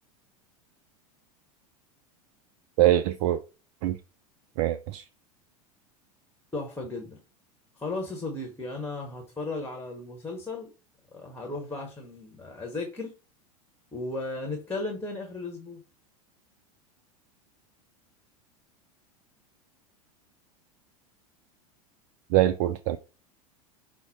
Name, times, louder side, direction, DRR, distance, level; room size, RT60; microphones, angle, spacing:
voice 1, 2.8-3.4 3.8-4.0 4.6-5.0 22.3-23.0, right 13 dB, 55° right, 0.4 m, -23 dB
voice 2, 6.5-7.2 7.8-10.7 11.1-13.1 13.9-15.8, left 2 dB, 10° left, 1.3 m, -35 dB
5.8 x 2.1 x 4.1 m
figure-of-eight pair, 85°, 19 cm